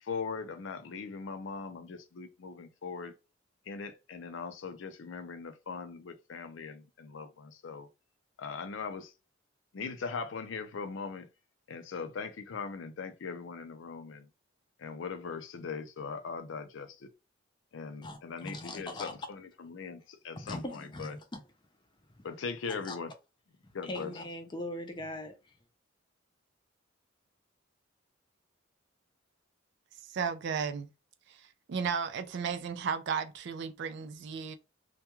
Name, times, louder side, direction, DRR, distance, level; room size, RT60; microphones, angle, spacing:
voice 1, 0.0-3.1 3.7-7.9 8.4-9.1 9.7-11.3 11.7-14.3 14.8-17.1 17.7-21.1 22.2-23.1 23.7-24.1, left 5 dB, 70° left, 0.4 m, -40 dB
voice 2, 18.0-19.1 20.4-21.4 22.2-22.3 22.7-23.0 23.8-25.5, left 1 dB, 25° left, 0.5 m, -40 dB
voice 3, 30.1-30.9 31.3-31.4 31.7-34.6, right 6 dB, 60° right, 0.4 m, -34 dB
2.3 x 2.2 x 2.9 m
head